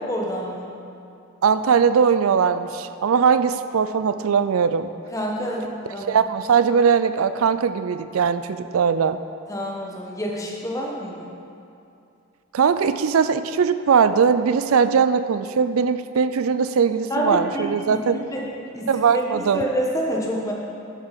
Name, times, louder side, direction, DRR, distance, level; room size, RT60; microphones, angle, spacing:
voice 1, 0.1-0.7 5.1-6.2 9.5-11.3 17.1-18.5 18.7-20.5, equal, 15° left, -2 dB, 1.4 m, -28 dB
voice 2, 1.4-4.9 6.1-9.2 12.5-18.2 18.9-19.6, right 6 dB, 85° right, 12 dB, 0.4 m, -20 dB
11.5 x 6.6 x 5.9 m, 2.5 s
head